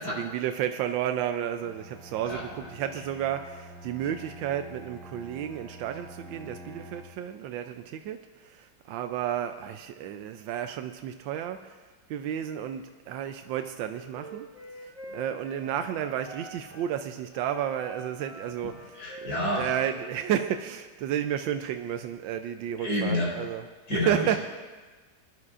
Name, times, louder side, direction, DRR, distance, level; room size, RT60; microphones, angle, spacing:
voice 1, 0.1-11.8 12.1-14.5 14.8-24.4, right 10 dB, 90° right, 7 dB, 1.3 m, -32 dB
Bowed string instrument, 1.6-7.3, equal, 60° right, 2.8 m, -46 dB
Wind instrument woodwind instrument, 13.8-16.9 17.3-20.7, right 1 dB, 20° right, 3.2 m, -46 dB
voice 2, 18.6-19.7 22.8-23.3 23.9-24.4, left 1 dB, 60° left, -5 dB, 5.0 m, -29 dB
22.5 x 11.0 x 2.5 m, 1.3 s
omnidirectional pair, 2.0 m